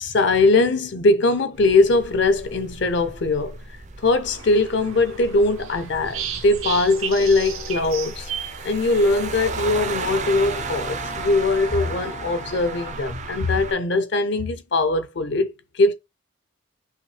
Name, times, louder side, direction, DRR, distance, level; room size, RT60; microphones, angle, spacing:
voice 1, 0.0-3.6 4.0-8.3 8.6-15.9, left 2 dB, 55° left, 0.7 m, -21 dB
sound 1, 1.6-13.7, right 4 dB, 35° right, 0.5 m, -35 dB
sound 2, 4.2-9.3, right 8 dB, 90° right, 1.0 m, -34 dB
sound 3, 6.7-13.0, left 4 dB, 90° left, 1.1 m, -42 dB
5.8 x 2.7 x 3.2 m
head